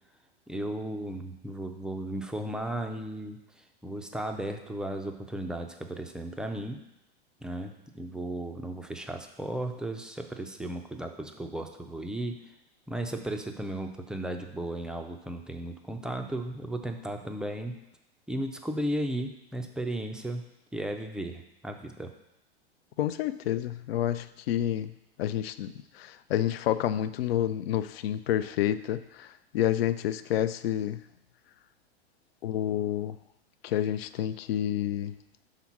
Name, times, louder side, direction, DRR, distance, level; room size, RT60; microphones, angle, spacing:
voice 1, 0.5-3.4 3.8-6.8 7.4-12.4 12.9-17.8 18.3-20.4 20.7-22.1, right 1 dB, ahead, 4 dB, 0.3 m, -35 dB
voice 2, 23.0-24.9 25.2-31.0 32.4-33.2 33.6-35.1, left 11 dB, 65° left, 13 dB, 0.5 m, -29 dB
5.8 x 3.8 x 5.8 m, 0.84 s
hypercardioid pair, 100°, 32 cm